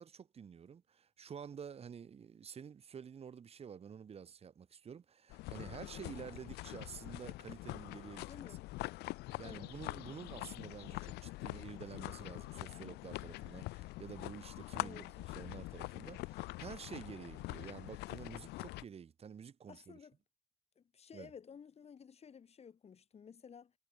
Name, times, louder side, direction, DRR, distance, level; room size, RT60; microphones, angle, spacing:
voice 1, 0.0-8.3 9.4-20.0 21.1-21.3, right 7 dB, 35° right, 1.6 m, -50 dB
sound 1, 5.3-18.8, left 20 dB, 80° left, 0.4 m, -44 dB
voice 2, 8.3-8.7 9.4-9.7 14.7-15.0 19.7-20.1 20.8-23.7, left 7 dB, 40° left, 3.3 m, -54 dB
cardioid pair, 110°, 17 cm